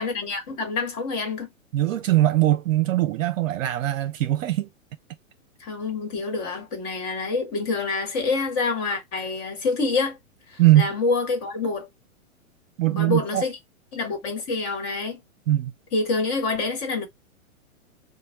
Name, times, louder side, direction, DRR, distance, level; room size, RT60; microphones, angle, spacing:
voice 1, 0.0-1.5 5.6-10.2 10.5-11.9 12.9-13.6 13.9-15.2 15.9-17.1, left 3 dB, 35° left, 1.4 m, -27 dB
voice 2, 1.7-4.7 10.6-10.9 12.8-13.4 15.5-15.7, right 15 dB, 65° right, 0.6 m, -21 dB
3.1 x 2.2 x 4.2 m
hypercardioid pair, 130°, 43 cm